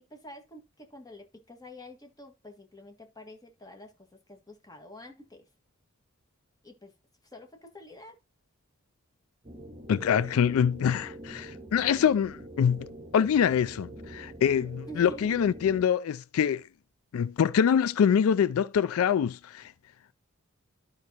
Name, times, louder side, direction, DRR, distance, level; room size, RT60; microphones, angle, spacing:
voice 1, 0.0-3.9 4.3-5.5 6.6-6.9 7.3-8.2 14.9-15.6, equal, 15° left, 1.7 m, -48 dB
sound 1, 9.4-15.9, right 1 dB, 30° right, 1.2 m, -45 dB
voice 2, 9.9-16.6 17.1-19.7, left 8 dB, 80° left, 0.3 m, -25 dB
12.5 x 5.4 x 2.9 m
head